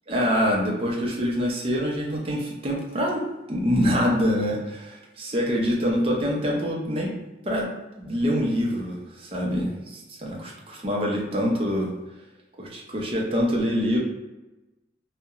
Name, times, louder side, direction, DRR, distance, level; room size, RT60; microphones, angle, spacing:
voice 1, 0.1-3.2 3.5-7.1 7.4-7.7 8.0-11.9 12.6-14.0, equal, 30° right, -2 dB, 0.5 m, -25 dB
2.8 x 2.0 x 2.3 m, 1.1 s
head